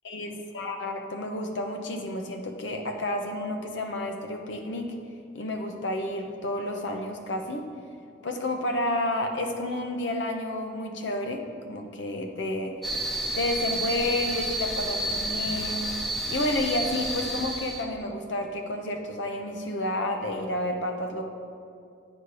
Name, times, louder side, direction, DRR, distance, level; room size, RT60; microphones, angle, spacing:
voice 1, 0.0-4.9 5.3-7.7 8.2-12.8 13.4-15.9 16.3-21.3, left 1 dB, 75° left, 4 dB, 0.7 m, -30 dB
sound 1, 12.8-17.8, right 1 dB, ahead, 0.7 m, -30 dB
9.4 x 4.3 x 4.8 m, 2.5 s
head